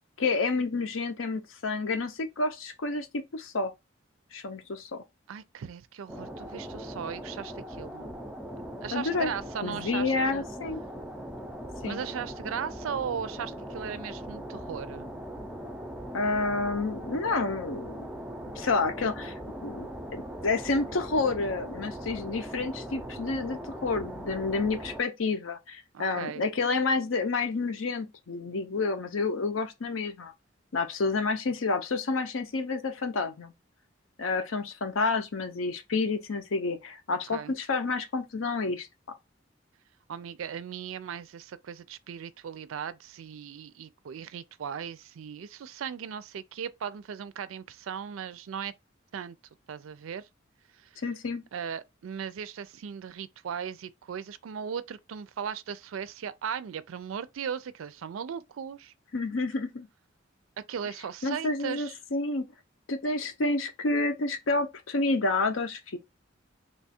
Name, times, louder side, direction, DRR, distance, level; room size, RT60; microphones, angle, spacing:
voice 1, 0.2-3.7 4.3-5.0 8.9-9.3 9.6-10.8 11.8-12.0 16.1-17.9 18.6-19.3 19.6-30.3 30.7-33.5 34.2-38.9 51.0-51.4 59.1-59.9 61.2-62.5 62.9-66.0, left 3 dB, 85° left, 0.7 m, -29 dB
voice 2, 5.3-8.2 8.8-10.5 11.8-15.1 25.9-26.4 37.3-37.5 40.1-48.7 49.1-49.4 49.7-50.3 50.7-51.0 51.5-58.9 60.7-62.0, right 7 dB, 90° right, 0.4 m, -37 dB
sound 1, 6.1-25.0, equal, 5° right, 0.4 m, -40 dB
3.1 x 2.3 x 4.1 m
head